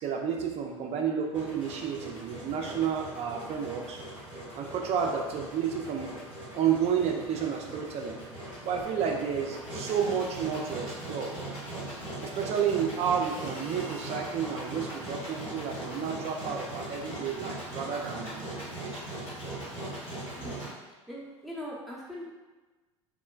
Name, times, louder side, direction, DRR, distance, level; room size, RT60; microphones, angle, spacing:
voice 1, 0.0-4.0 4.5-6.1 6.5-8.2 8.6-11.4 12.2-19.0, right 7 dB, 40° right, 2 dB, 0.5 m, -31 dB
Engine, 1.3-20.7, right 1 dB, 80° left, 1.4 m, -40 dB
voice 2, 21.1-22.3, equal, ahead, -5 dB, 0.7 m, -40 dB
3.5 x 2.1 x 2.3 m, 1.2 s
hypercardioid pair, 75°, 16 cm